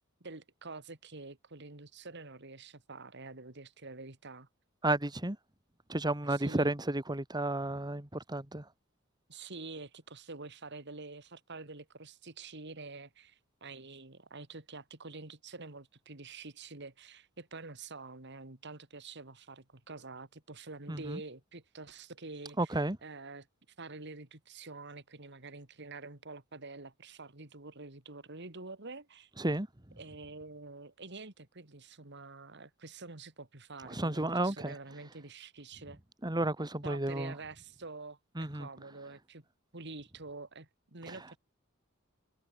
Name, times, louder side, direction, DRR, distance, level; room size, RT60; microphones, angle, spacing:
voice 1, 0.2-4.5 6.3-6.7 9.3-23.5 23.8-29.3 30.0-36.0 36.8-39.4 39.7-41.4, right 3 dB, 60° right, 2.8 m, -47 dB
voice 2, 4.8-5.4 5.9-8.7 20.9-21.2 22.6-23.0 29.4-29.7 33.9-34.8 36.2-37.3 38.4-38.7 41.1-41.2, right 2 dB, 20° right, 1.8 m, -32 dB
head